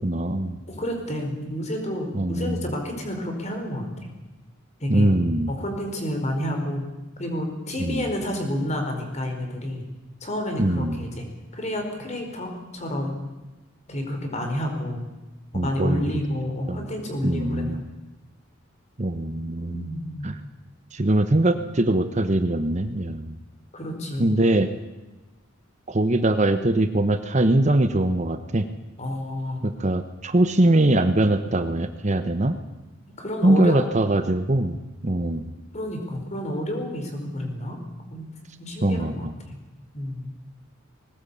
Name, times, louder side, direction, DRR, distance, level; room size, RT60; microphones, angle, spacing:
voice 1, 0.0-0.6 2.1-2.6 4.9-5.5 7.8-8.0 10.6-11.0 15.5-16.0 16.7-16.8 17.2-17.8 19.0-19.9 20.2-20.4 20.9-23.4 24.2-24.7 25.9-28.6 29.6-32.6 33.4-34.8 35.0-35.5 38.8-39.3, right 1 dB, 35° right, 9 dB, 1.0 m, -22 dB
voice 2, 0.7-4.1 4.8-5.1 5.5-6.8 7.2-9.8 10.2-11.3 11.5-13.2 13.9-15.0 15.5-17.8 19.6-20.3 23.7-24.3 29.0-29.6 33.1-33.8 35.7-37.8 38.1-38.3 38.6-39.6 39.9-40.3, left 1 dB, 35° left, 3 dB, 4.6 m, -30 dB
20.0 x 19.0 x 8.6 m, 1.1 s
head